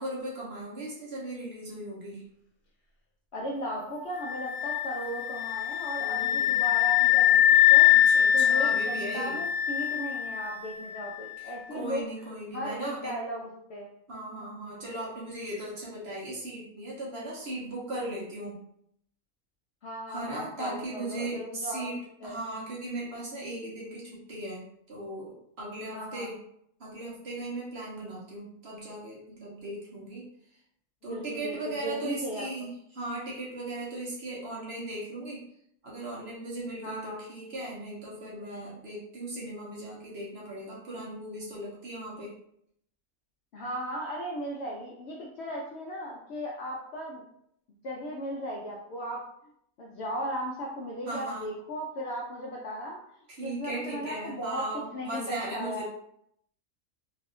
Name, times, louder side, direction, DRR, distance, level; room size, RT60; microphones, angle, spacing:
voice 1, 0.0-2.2 6.0-6.6 7.9-9.4 11.4-13.1 14.1-18.6 20.1-22.0 22.2-24.6 24.9-26.4 26.8-30.3 31.0-35.4 35.8-42.3 51.1-51.5 53.4-55.9, right 1 dB, 50° right, -6 dB, 1.1 m, -38 dB
voice 2, 3.3-12.1 12.5-13.9 19.8-22.4 25.9-26.3 31.1-32.5 36.8-37.2 43.5-47.2 47.8-49.3 49.8-53.0 53.4-54.7 54.9-55.9, equal, 65° left, -3 dB, 0.7 m, -36 dB
sound 1, 4.2-11.0, left 11 dB, 90° left, 1.3 m, -23 dB
3.1 x 2.6 x 2.5 m, 0.72 s
omnidirectional pair, 1.5 m